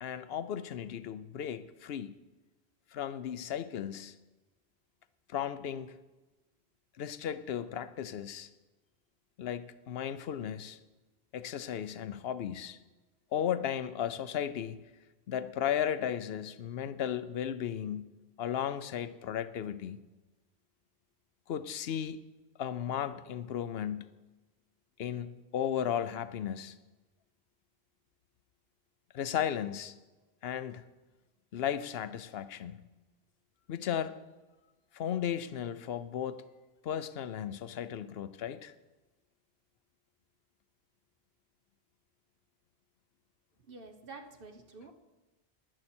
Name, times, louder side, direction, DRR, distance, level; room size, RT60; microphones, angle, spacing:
voice 1, 0.0-2.1 2.9-4.1 5.3-5.9 7.0-8.5 9.4-10.8 11.3-12.8 13.3-14.8 15.3-20.0 21.5-22.2 22.6-24.2 25.0-26.7 29.1-29.9 30.4-30.8 31.5-32.8 33.7-34.2 34.9-36.4 36.8-38.7, left 9 dB, 65° left, 0.9 m, -35 dB
voice 2, 43.7-44.9, right 3 dB, 55° right, 1.2 m, -48 dB
15.0 x 11.0 x 4.4 m
omnidirectional pair, 1.1 m